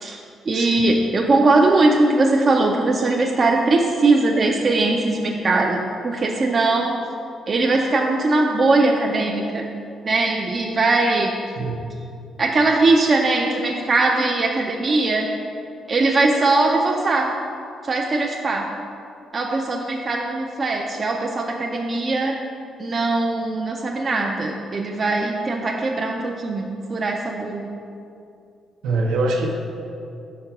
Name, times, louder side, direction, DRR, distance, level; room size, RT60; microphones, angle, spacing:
voice 1, 0.0-7.0 7.5-9.7 10.0-11.3 12.4-15.3 15.9-17.3 17.8-18.7 19.3-22.4 22.8-27.7, right 2 dB, 40° right, 0 dB, 0.5 m, -20 dB
voice 2, 28.8-29.5, right 2 dB, 85° right, 0 dB, 0.8 m, -22 dB
5.7 x 4.1 x 5.8 m, 2.6 s
cardioid pair, 90°, 0 cm